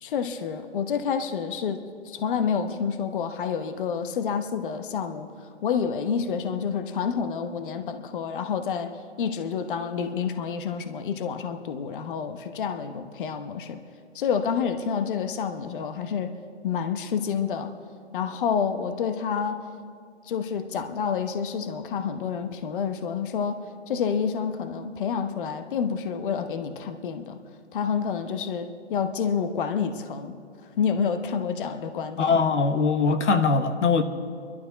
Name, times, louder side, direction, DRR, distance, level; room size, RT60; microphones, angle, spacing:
voice 1, 0.0-13.8 14.1-16.3 16.6-17.7 18.1-19.6 20.2-27.4 27.7-30.3 30.8-32.3, left 6 dB, 50° left, 8 dB, 1.0 m, -28 dB
voice 2, 32.2-34.0, left 4 dB, 90° left, 8 dB, 1.2 m, -21 dB
26.0 x 12.0 x 4.0 m, 2.2 s
hypercardioid pair, 155°, 34 cm